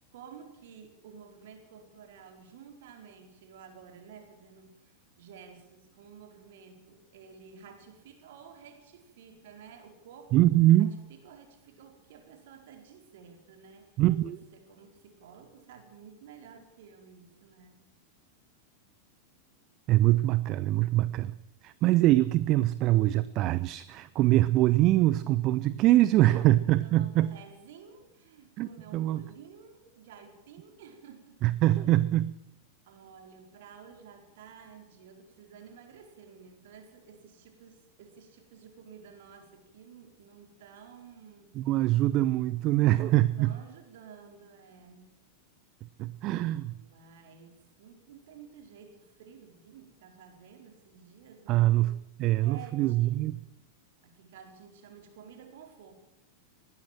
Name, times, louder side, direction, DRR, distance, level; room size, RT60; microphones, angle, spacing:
voice 1, 0.1-10.3 10.8-17.9 26.2-31.4 32.9-41.6 42.8-45.2 46.7-51.9 52.4-53.3 54.0-55.9, right 7 dB, 55° right, 5 dB, 4.5 m, -52 dB
voice 2, 10.3-11.0 14.0-14.4 19.9-21.3 21.6-27.3 28.6-29.2 31.4-32.3 41.6-43.5 46.0-46.7 51.5-53.4, right 15 dB, 40° right, 17 dB, 0.7 m, -24 dB
20.5 x 17.0 x 7.5 m, 0.84 s
figure-of-eight pair, 90°, 0 cm